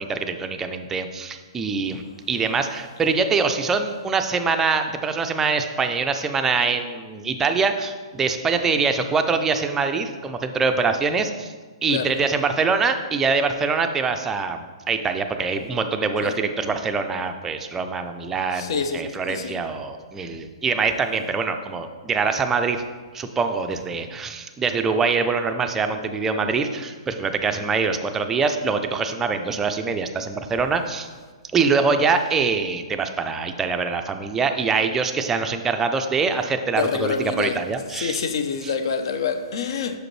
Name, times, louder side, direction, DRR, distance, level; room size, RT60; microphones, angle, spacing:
voice 1, 0.0-11.5 11.8-22.8 23.1-31.1 31.5-38.3 38.6-38.7, right 4 dB, 10° right, 0.4 m, -24 dB
voice 2, 18.5-19.6 36.7-37.6 38.0-40.0, left 6 dB, 60° left, 0.6 m, -26 dB
6.5 x 5.0 x 3.1 m
hypercardioid pair, 150°, 3 cm